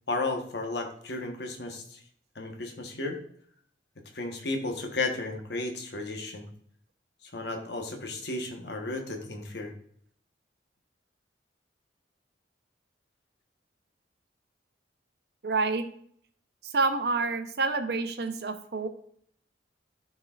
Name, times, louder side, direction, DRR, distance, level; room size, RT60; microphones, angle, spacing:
voice 1, 0.1-2.0 2.3-3.2 4.1-6.5 7.3-9.7, left 2 dB, 65° left, 3 dB, 1.1 m, -33 dB
voice 2, 15.4-15.8 16.6-18.9, right 3 dB, 60° right, 8 dB, 0.7 m, -28 dB
12.5 x 4.5 x 2.4 m, 0.62 s
head